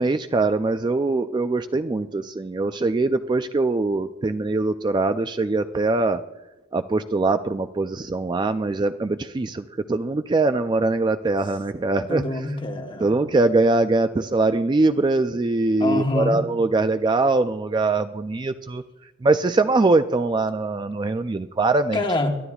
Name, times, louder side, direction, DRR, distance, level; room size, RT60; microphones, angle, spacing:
voice 1, 0.0-6.2 6.7-12.2 13.0-18.8 19.2-22.0, right 3 dB, 20° right, 9 dB, 0.3 m, -22 dB
voice 2, 12.1-13.1 15.8-16.4 21.9-22.3, left 2 dB, 25° left, 4 dB, 1.2 m, -25 dB
22.5 x 12.5 x 2.3 m, 1.1 s
head